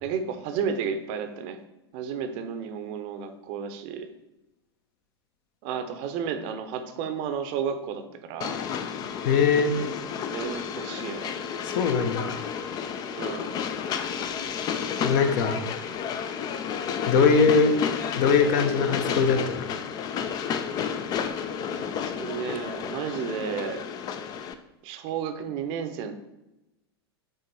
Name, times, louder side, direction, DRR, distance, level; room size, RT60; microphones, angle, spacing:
voice 1, 0.0-1.6 1.9-4.1 5.6-8.0 8.3-8.6 10.3-11.4 13.2-13.5 17.7-17.8 22.2-23.8 24.8-26.1, right 7 dB, 40° right, 8 dB, 0.8 m, -32 dB
Train, 8.4-24.5, left 7 dB, 30° left, 0.5 m, -31 dB
voice 2, 9.2-9.7 11.6-12.4 15.0-15.6 17.1-17.7 18.2-19.7, left 5 dB, 45° left, 6 dB, 0.9 m, -21 dB
9.2 x 3.8 x 4.1 m, 0.94 s
figure-of-eight pair, 90°, 14 cm